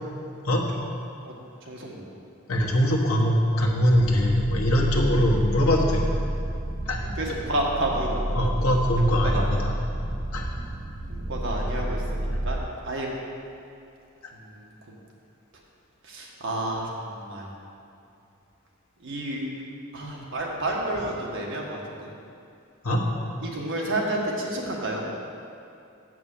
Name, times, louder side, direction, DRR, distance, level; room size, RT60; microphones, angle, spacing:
voice 1, 1.7-2.1 7.0-8.7 9.2-9.6 11.1-13.1 14.3-14.9 16.0-17.5 19.0-19.5 19.9-22.1 23.4-25.0, right 1 dB, 60° right, -2 dB, 1.5 m, -30 dB
voice 2, 2.5-6.0 6.9-7.0 8.3-9.7 10.3-10.5 22.8-23.0, equal, 75° left, -1 dB, 1.3 m, -22 dB
sound 1, 3.9-12.6, right 1 dB, 10° right, 0.3 m, -29 dB
7.8 x 6.0 x 7.2 m, 2.6 s
head